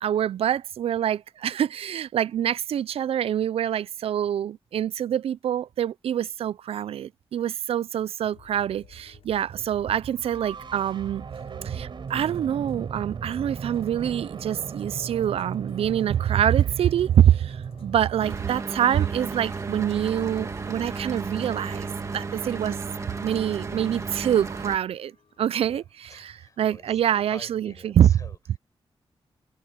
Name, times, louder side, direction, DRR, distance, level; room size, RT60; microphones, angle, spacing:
voice 1, 0.0-11.3 11.6-21.9 22.1-22.8 23.2-25.1 25.4-25.8 26.2-28.1, right 10 dB, 90° right, 0.4 m, -25 dB
sound 1, 8.3-28.0, left 7 dB, 80° left, 7.4 m, -55 dB
sound 2, 9.5-18.4, right 6 dB, 55° right, 4.5 m, -37 dB
Mechanical fan, 18.2-24.8, right 4 dB, 30° right, 1.5 m, -33 dB
voice 2, 25.7-28.6, left 4 dB, 35° left, 5.1 m, -49 dB
wide cardioid pair, 175°, 10 cm